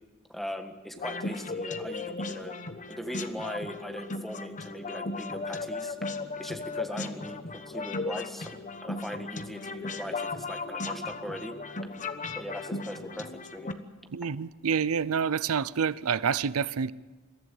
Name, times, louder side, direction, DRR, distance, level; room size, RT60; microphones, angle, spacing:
voice 1, 0.3-2.5 2.9-6.0 6.4-8.6 8.8-11.5 12.3-13.7, equal, ahead, 1.6 m, -40 dB
sound 1, 1.0-13.7, left 3 dB, 35° left, 1.2 m, -36 dB
voice 2, 14.1-16.9, right 6 dB, 90° right, 0.6 m, -28 dB
23.0 x 14.5 x 8.4 m
head